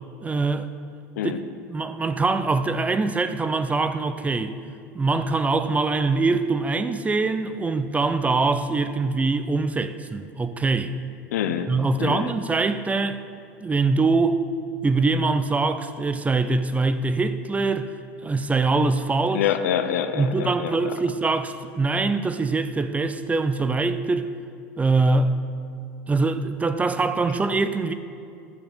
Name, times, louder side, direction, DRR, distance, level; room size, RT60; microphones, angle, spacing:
voice 1, 0.2-0.7 1.2-1.3 1.7-4.5 4.9-10.9 11.7-13.2 13.6-14.4 14.8-17.9 18.2-19.4 20.1-24.3 24.8-25.4 26.1-27.9, right 3 dB, 15° right, 11 dB, 0.5 m, -23 dB
voice 2, 11.3-11.7 12.0-12.3 19.3-20.9, left 9 dB, 85° left, 10 dB, 0.6 m, -26 dB
11.5 x 7.0 x 5.2 m, 2.4 s
hypercardioid pair, 100°, 9 cm